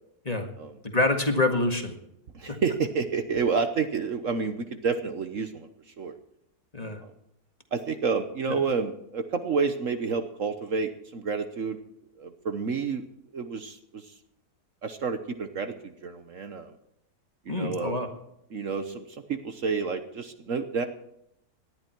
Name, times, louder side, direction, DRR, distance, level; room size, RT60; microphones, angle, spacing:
voice 1, 0.8-2.0 2.5-2.6 6.7-7.0 8.5-8.6 17.5-18.1, left 2 dB, 25° left, 4 dB, 1.9 m, -26 dB
voice 2, 2.3-5.7 6.0-6.1 7.0-7.1 7.7-11.8 12.2-13.0 13.3-14.1 14.8-16.7 17.4-18.0 18.5-20.9, right 5 dB, 55° right, 8 dB, 1.3 m, -29 dB
19.0 x 11.5 x 4.6 m, 0.78 s
omnidirectional pair, 1.7 m